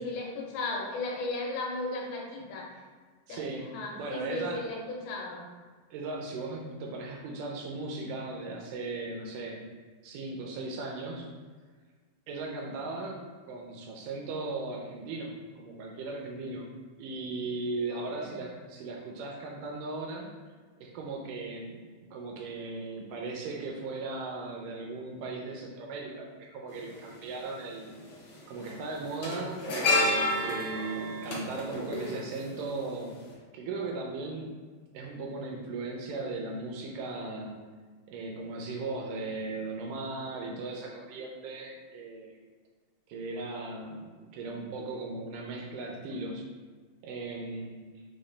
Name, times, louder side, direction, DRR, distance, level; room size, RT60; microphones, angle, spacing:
voice 1, 0.0-2.7 3.3-3.4 3.7-5.5 17.9-18.3, left 2 dB, 85° left, -2 dB, 2.6 m, -35 dB
voice 2, 3.3-4.6 5.9-9.6 10.0-11.3 12.3-13.2 13.5-16.7 17.0-20.3 20.8-21.8 22.1-28.0 28.5-33.2 33.5-34.5 34.9-37.6 38.1-42.3 43.1-46.5 47.0-47.8, right 3 dB, 80° right, 0 dB, 1.9 m, -37 dB
sound 1, 26.7-26.8 28.0-28.3 28.6-32.9 33.1-33.3, left 2 dB, 70° left, 1.3 m, -30 dB
5.9 x 2.3 x 3.2 m, 1.5 s
omnidirectional pair, 4.2 m